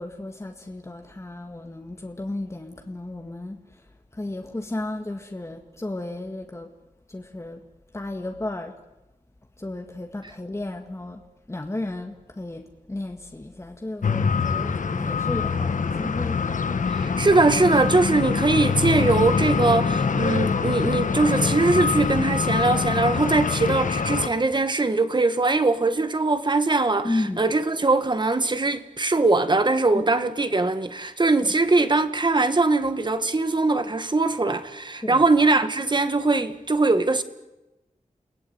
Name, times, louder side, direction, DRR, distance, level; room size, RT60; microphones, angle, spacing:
voice 1, 0.0-3.8 4.1-6.7 7.1-7.6 7.9-8.7 9.6-11.2 11.5-16.4 27.0-27.4 29.9-30.0 31.4-31.5 35.0-35.2, left 2 dB, 20° left, 1.9 m, -33 dB
sound 1, 14.0-24.3, left 5 dB, 85° left, 1.4 m, -24 dB
voice 2, 16.9-27.1 27.4-37.2, right 3 dB, 35° right, 1.8 m, -21 dB
29.5 x 19.0 x 9.5 m
wide cardioid pair, 105°, 13 cm